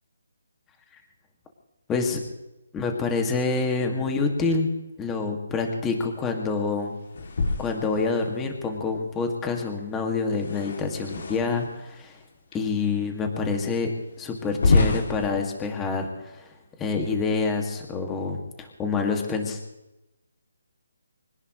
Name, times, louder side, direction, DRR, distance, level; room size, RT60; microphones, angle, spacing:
voice 1, 1.9-2.2 2.7-4.7 5.0-6.9 7.6-12.2 12.5-13.9 14.2-16.5 16.8-19.6, left 4 dB, 10° left, 3 dB, 2.1 m, -27 dB
sound 1, 7.1-8.5 10.3-11.8 12.5-12.6 13.3-13.4 14.5-15.3, left 3 dB, 55° left, 2.7 m, -26 dB
25.0 x 18.0 x 3.2 m, 0.94 s
hypercardioid pair, 170°, 0 cm